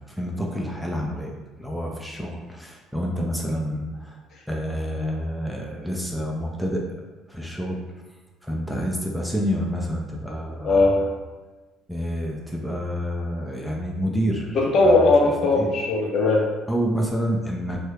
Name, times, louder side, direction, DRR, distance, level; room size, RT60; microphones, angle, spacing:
voice 1, 0.1-1.3 1.6-4.1 4.5-6.8 7.3-7.8 8.4-11.0 11.9-14.6 14.8-15.1 15.5-15.7 16.7-17.8, equal, ahead, -2 dB, 0.5 m, -28 dB
voice 2, 10.6-11.0 14.5-16.5, left 2 dB, 50° left, -1 dB, 0.7 m, -18 dB
3.0 x 2.3 x 3.2 m, 1.2 s
figure-of-eight pair, 50°, 0 cm